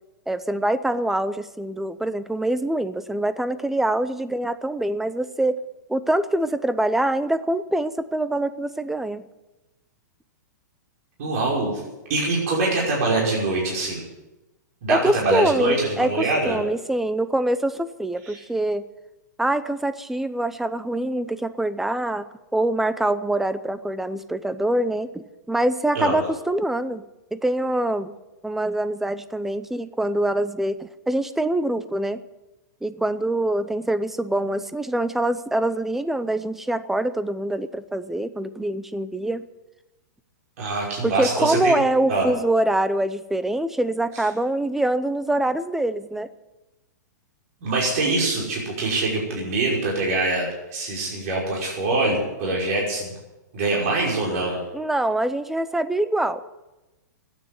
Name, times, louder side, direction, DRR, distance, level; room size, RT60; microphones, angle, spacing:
voice 1, 0.3-5.6 5.9-9.2 14.9-18.8 19.4-22.2 22.5-27.0 27.3-28.2 28.4-32.2 32.8-39.4 41.0-46.3 54.7-56.5, right 1 dB, 5° right, 13 dB, 0.6 m, -24 dB
voice 2, 11.2-11.8 12.1-14.0 14.8-16.6 18.2-18.4 25.9-26.2 40.6-41.8 42.1-42.3 47.6-53.1 53.5-54.6, right 2 dB, 50° right, -3 dB, 5.8 m, -24 dB
14.0 x 9.5 x 9.6 m, 1.0 s
hypercardioid pair, 150°, 10 cm